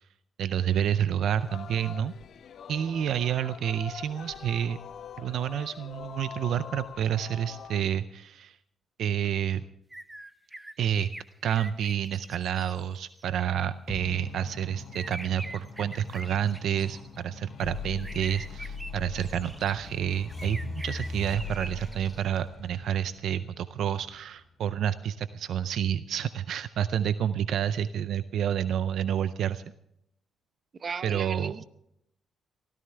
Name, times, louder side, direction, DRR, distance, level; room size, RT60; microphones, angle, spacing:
voice 1, 0.4-2.1 2.7-4.8 5.2-8.6 9.0-9.6 10.8-11.1 11.4-29.6 31.0-31.5, right 9 dB, 70° right, 14 dB, 0.5 m, -29 dB
Singing, 1.4-7.8, left 7 dB, 60° left, 0.7 m, -44 dB
sound 1, 9.9-13.2 14.9-17.2 18.0-19.7 20.3-22.2, right 1 dB, 10° right, 0.8 m, -44 dB
sound 2, 13.9-24.7, left 4 dB, 45° left, 4.9 m, -41 dB
voice 2, 30.8-31.6, right 5 dB, 45° right, 13 dB, 0.8 m, -35 dB
23.5 x 14.5 x 3.3 m, 0.76 s
cardioid pair, 90°, 0 cm